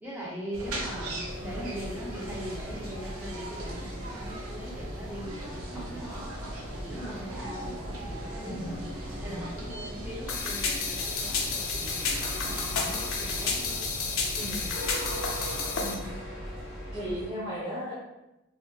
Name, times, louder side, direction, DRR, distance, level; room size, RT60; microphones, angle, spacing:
voice 1, 0.0-5.4 5.7-8.9 9.2-11.9 12.4-13.5, equal, 10° right, -6 dB, 0.6 m, -41 dB
sound 1, 0.5-15.6, right 1 dB, 90° right, 0.6 m, -40 dB
sound 2, 0.6-17.3, equal, 55° right, 1.3 m, -40 dB
voice 2, 8.4-8.8 9.2-9.4 14.3-14.6 15.8-16.1 16.9-17.9, equal, 25° right, -12 dB, 1.2 m, -36 dB
sound 3, 10.3-15.9, left 4 dB, 85° left, 0.4 m, -31 dB
2.7 x 2.3 x 2.3 m, 0.96 s
head